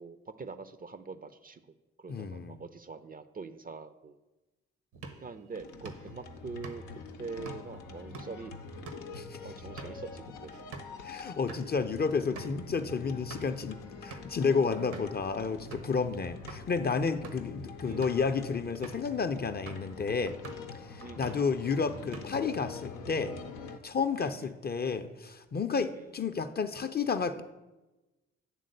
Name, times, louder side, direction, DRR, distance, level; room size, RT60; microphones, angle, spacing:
voice 1, 0.0-4.2 5.2-6.8 7.2-8.6 9.4-10.6 17.8-18.0 21.0-21.5 24.2-24.6 25.9-26.1, right 4 dB, 25° right, 12 dB, 0.5 m, -44 dB
voice 2, 2.1-2.6 9.1-9.4 11.0-20.4 20.9-23.4 23.8-27.4, left 5 dB, 30° left, 10 dB, 0.5 m, -31 dB
sound 1, 4.9-11.0 11.3-11.7 12.0-12.1 12.3-12.6 13.0-13.6 14.1-14.4 14.9-15.2 15.7-16.0 16.5-16.6 17.1-17.5 17.9-18.3 18.8-19.1 19.7-19.9 20.3-20.7 21.0-21.5 21.9-22.5, right 4 dB, 70° right, 1.0 m, -47 dB
sound 2, 5.5-23.8, left 4 dB, 85° left, 0.6 m, -46 dB
8.3 x 3.7 x 6.5 m, 1.1 s
hypercardioid pair, 40°, 32 cm